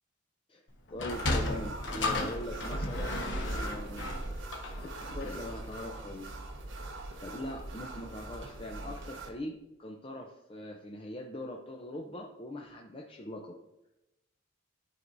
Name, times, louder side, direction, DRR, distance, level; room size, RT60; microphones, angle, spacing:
Sliding door, 0.9-5.5, left 2 dB, 65° left, 1.2 m, -34 dB
voice 1, 0.9-4.1 4.8-6.3 7.2-13.6, left 1 dB, 30° left, 1 dB, 0.6 m, -41 dB
sound 1, 1.1-9.3, right 2 dB, 75° right, 1.0 m, -40 dB
12.5 x 4.6 x 2.6 m, 0.91 s
head